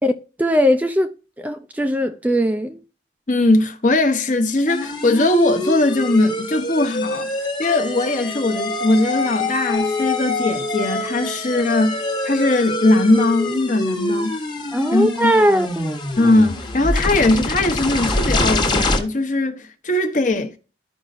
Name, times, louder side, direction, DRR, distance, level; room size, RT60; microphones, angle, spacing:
voice 1, 0.4-2.8 14.7-16.0, equal, 10° right, 0.4 m, -19 dB
voice 2, 3.3-7.3 7.6-14.3 14.9-15.3 16.2-20.6, left 2 dB, 45° left, 0.9 m, -19 dB
sound 1, 4.7-19.0, left 2 dB, 25° left, 1.1 m, -25 dB
12.5 x 5.2 x 2.5 m
head